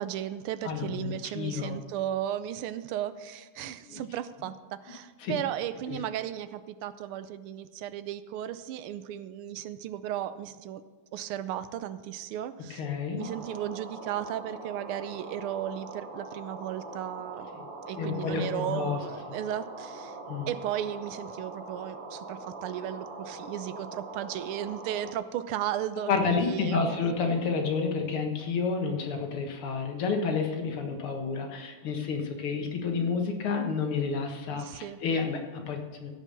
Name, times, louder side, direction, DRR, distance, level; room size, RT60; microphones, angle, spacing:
voice 1, 0.0-10.8 11.1-12.8 13.1-17.5 17.9-20.2 20.5-27.0 34.6-35.0, right 11 dB, 80° right, 13 dB, 1.5 m, -35 dB
voice 2, 0.6-1.8 3.8-4.0 5.2-5.4 5.9-6.0 12.7-13.3 18.0-19.0 20.3-20.5 26.1-36.1, left 5 dB, 80° left, 3 dB, 2.3 m, -30 dB
sound 1, 13.2-25.1, right 2 dB, 60° right, 2.1 m, -42 dB
15.5 x 5.3 x 6.6 m, 1.5 s
omnidirectional pair, 2.4 m